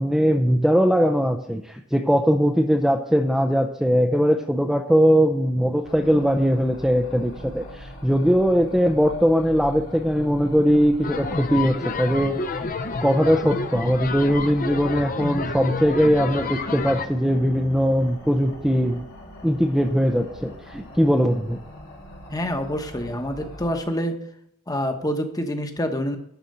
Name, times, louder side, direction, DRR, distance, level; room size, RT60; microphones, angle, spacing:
voice 1, 0.0-12.4 13.0-19.0 19.4-21.6, equal, ahead, 3 dB, 0.5 m, -20 dB
sound 1, 5.8-23.8, equal, 75° left, 4.6 m, -42 dB
sound 2, 11.0-17.1, left 4 dB, 40° left, 0.7 m, -30 dB
voice 2, 22.3-24.1 24.7-26.2, equal, 15° left, 6 dB, 1.0 m, -26 dB
12.0 x 4.3 x 7.8 m, 0.72 s
head